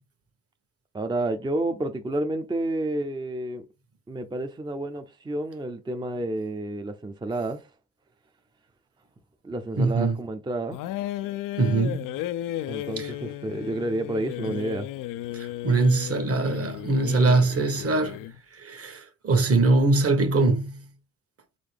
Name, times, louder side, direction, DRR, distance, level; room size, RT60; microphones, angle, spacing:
voice 1, 0.9-3.6 4.1-7.7 9.4-10.8 12.7-14.9, right 2 dB, 15° right, 0.6 m, -30 dB
voice 2, 9.8-10.1 11.6-12.1 13.0-13.1 15.3-18.2 18.5-20.8, right 3 dB, 45° right, 1.3 m, -22 dB
sound 1, 10.7-18.4, left 13 dB, 85° left, 0.5 m, -34 dB
4.0 x 3.8 x 3.4 m
cardioid pair, 75°, 32 cm